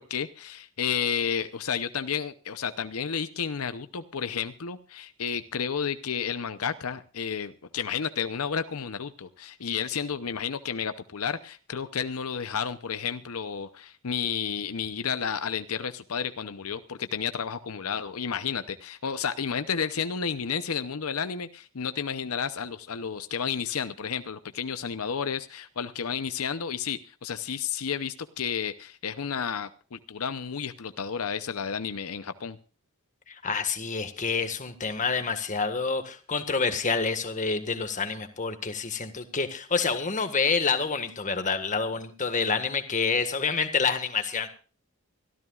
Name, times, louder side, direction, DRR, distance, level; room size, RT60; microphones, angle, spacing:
voice 1, 0.0-32.6, left 7 dB, 85° left, 11 dB, 0.7 m, -31 dB
voice 2, 33.3-44.5, left 5 dB, 35° left, 8 dB, 1.6 m, -28 dB
25.0 x 14.0 x 2.4 m, 0.37 s
head